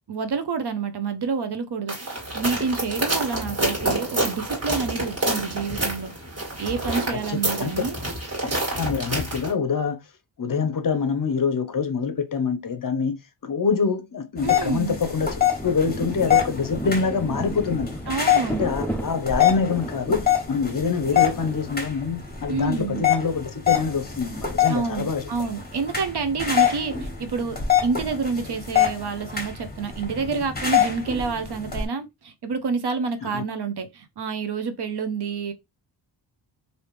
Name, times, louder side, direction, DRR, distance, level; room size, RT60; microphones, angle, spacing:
voice 1, 0.1-6.1 6.6-7.9 14.4-15.0 18.1-18.7 22.5-23.0 24.7-27.6 27.8-35.5, right 5 dB, 60° right, 0.7 m, -28 dB
sound 1, 1.9-9.5, right 1 dB, 35° right, 1.9 m, -28 dB
voice 2, 7.1-7.7 8.4-8.5 8.8-10.1 10.4-17.9 18.6-25.3 33.2-33.4, left 5 dB, 45° left, 0.6 m, -25 dB
sound 2, 14.4-31.8, left 9 dB, 20° left, 1.3 m, -26 dB
Rain, 14.9-22.2, right 1 dB, 5° left, 0.4 m, -34 dB
3.3 x 2.7 x 3.0 m
wide cardioid pair, 90°, 45 cm